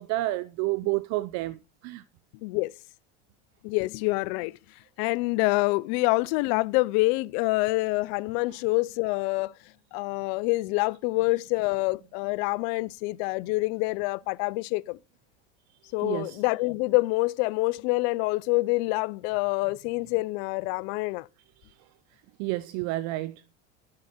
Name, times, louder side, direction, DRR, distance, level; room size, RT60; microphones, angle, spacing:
voice 1, 0.0-2.0 16.0-16.4 21.6-21.7 22.4-23.4, right 18 dB, 55° right, 0.6 m, -30 dB
voice 2, 2.4-2.7 3.6-4.6 5.0-9.5 9.9-15.0 15.9-21.3, left 23 dB, 65° left, 0.6 m, -26 dB
12.0 x 7.6 x 4.3 m
supercardioid pair, 115°, 34 cm